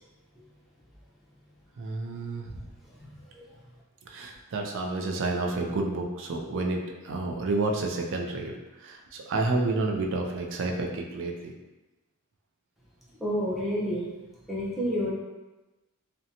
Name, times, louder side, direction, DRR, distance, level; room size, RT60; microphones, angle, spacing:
voice 1, 1.8-2.6 4.0-11.6, right 2 dB, 60° right, 2 dB, 0.4 m, -30 dB
voice 2, 3.0-3.6 13.2-14.1 14.5-15.1, equal, ahead, -7 dB, 0.6 m, -30 dB
2.6 x 2.2 x 2.7 m, 1.1 s
head